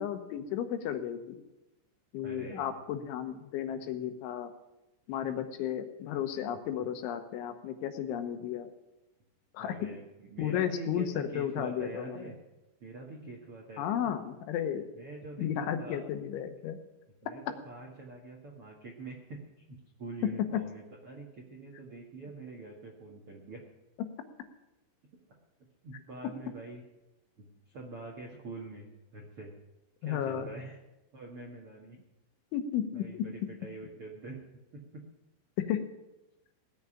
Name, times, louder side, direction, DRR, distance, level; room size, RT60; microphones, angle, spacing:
voice 1, 0.0-1.4 2.1-4.5 5.1-8.7 9.5-9.8 10.4-12.3 13.8-14.8 15.4-16.8 30.0-30.5 32.5-33.2 35.7-35.8, left 9 dB, 80° left, 8 dB, 3.4 m, -33 dB
voice 2, 2.2-2.8 6.8-6.9 9.6-12.3 12.8-14.1 14.9-16.0 17.2-19.4 19.7-23.6 25.8-26.8 27.4-28.9 29.1-29.5 30.0-30.8 31.1-32.0 32.9-34.4 34.7-35.0, right 3 dB, 60° right, -1 dB, 1.4 m, -45 dB
17.5 x 7.3 x 10.0 m, 0.99 s
omnidirectional pair, 5.6 m